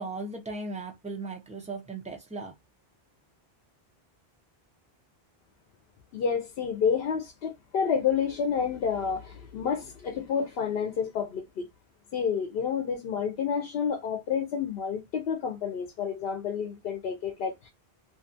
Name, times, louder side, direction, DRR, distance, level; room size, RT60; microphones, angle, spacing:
voice 1, 0.0-2.5, right 3 dB, 10° right, 0.5 m, -37 dB
voice 2, 6.1-11.7 12.1-17.7, left 7 dB, 70° left, 0.8 m, -29 dB
2.6 x 2.3 x 2.6 m
omnidirectional pair, 1.0 m